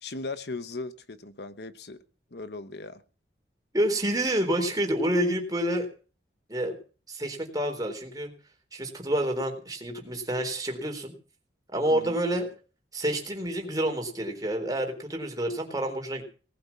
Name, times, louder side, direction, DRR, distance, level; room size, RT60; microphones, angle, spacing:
voice 1, 0.0-2.0 2.3-3.0 11.9-12.2, left 3 dB, 65° left, 1.1 m, -38 dB
voice 2, 3.7-5.9 6.5-6.8 7.1-8.3 8.7-11.1 11.7-12.5 12.9-16.2, right 1 dB, 20° right, 3.9 m, -28 dB
19.0 x 8.8 x 7.3 m
head